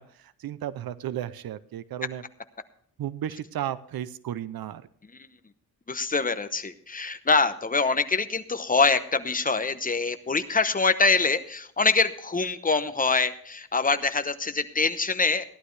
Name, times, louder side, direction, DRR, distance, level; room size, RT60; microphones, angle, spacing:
voice 1, 0.0-2.2 3.0-4.8, right 11 dB, 85° right, 16 dB, 0.6 m, -34 dB
voice 2, 5.9-15.5, left 4 dB, 25° left, 11 dB, 0.9 m, -24 dB
15.5 x 11.5 x 3.3 m, 0.63 s
wide cardioid pair, 90°, 35 cm